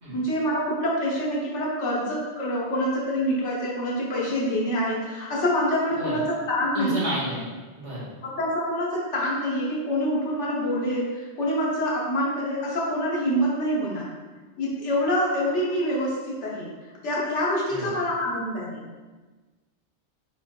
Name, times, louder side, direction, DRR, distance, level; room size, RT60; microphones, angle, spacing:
voice 1, 0.1-7.1 8.2-14.1 14.6-16.7 17.0-18.8, equal, 85° left, -5 dB, 1.4 m, -26 dB
voice 2, 6.8-7.4 7.8-8.1 17.7-17.9, right 1 dB, 70° right, -8 dB, 1.7 m, -30 dB
4.4 x 4.1 x 2.3 m, 1.3 s
omnidirectional pair, 1.2 m